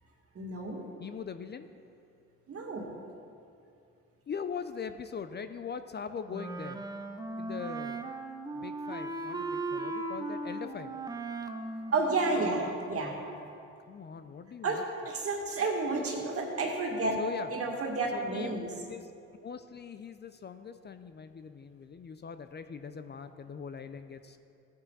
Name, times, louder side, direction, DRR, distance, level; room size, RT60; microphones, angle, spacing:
voice 1, 0.3-0.8 2.5-2.9 11.9-13.2 14.6-17.2 17.5-18.7, right 3 dB, 50° right, 0 dB, 2.2 m, -31 dB
voice 2, 1.0-1.7 4.3-6.8 7.4-8.0 8.5-10.9 13.8-14.8 17.2-17.5 18.1-18.6 18.9-19.1 19.4-24.4, left 6 dB, 35° left, 10 dB, 0.5 m, -41 dB
Wind instrument woodwind instrument, 6.3-12.9, right 2 dB, 15° right, 0.7 m, -38 dB
15.0 x 9.4 x 4.1 m, 2.5 s
cardioid pair, 90°, 29 cm